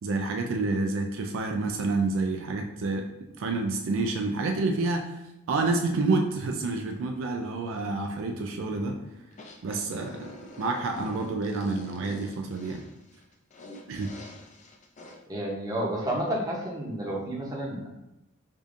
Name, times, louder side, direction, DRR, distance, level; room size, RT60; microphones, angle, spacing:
voice 1, 0.0-3.0 3.4-5.1 5.5-9.0 9.6-10.3 10.6-12.8 13.9-14.1, right 3 dB, 60° right, 3 dB, 0.4 m, -28 dB
sound 1, 9.3-15.2, left 1 dB, 35° left, 0.4 m, -46 dB
voice 2, 15.3-17.9, right 1 dB, 20° right, -3 dB, 0.7 m, -30 dB
4.9 x 2.6 x 2.5 m, 0.93 s
head